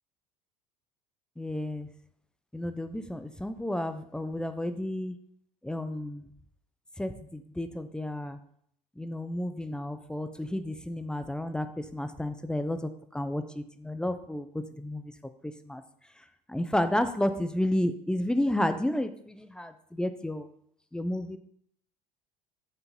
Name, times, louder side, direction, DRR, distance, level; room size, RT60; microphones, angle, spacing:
voice 1, 1.4-1.9 2.5-5.2 5.6-6.3 7.0-8.4 9.0-14.5 14.8-15.0 15.7-15.8 16.5-20.5 20.9-21.4, left 1 dB, 5° left, 9 dB, 0.4 m, -31 dB
8.2 x 3.9 x 3.9 m, 0.68 s
figure-of-eight pair, 60°, 21 cm